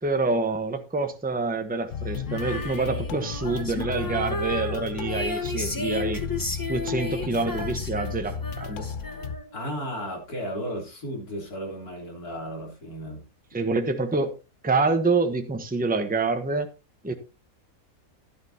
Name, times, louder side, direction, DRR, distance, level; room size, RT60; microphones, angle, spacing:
voice 1, 0.0-6.2 6.7-8.9 13.5-14.3 14.6-16.7 17.0-17.2, right 3 dB, 5° right, 1.0 m, -26 dB
sound 1, 1.9-9.4, left 6 dB, 60° left, 1.1 m, -34 dB
Female singing, 2.3-9.6, left 2 dB, 15° left, 1.3 m, -33 dB
voice 2, 9.5-13.2, equal, 90° left, 4.1 m, -34 dB
12.0 x 11.5 x 2.9 m
omnidirectional pair, 1.5 m